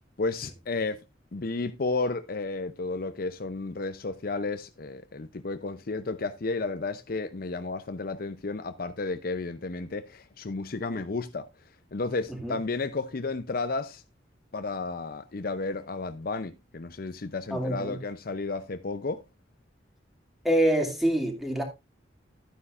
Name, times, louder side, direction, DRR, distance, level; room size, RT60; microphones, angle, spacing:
voice 1, 0.2-1.0 1.3-11.5 11.9-14.0 14.5-19.2, left 3 dB, 50° left, 0.6 m, -32 dB
voice 2, 17.5-18.0 20.4-21.6, right 1 dB, ahead, 2.4 m, -25 dB
12.0 x 9.6 x 2.5 m
head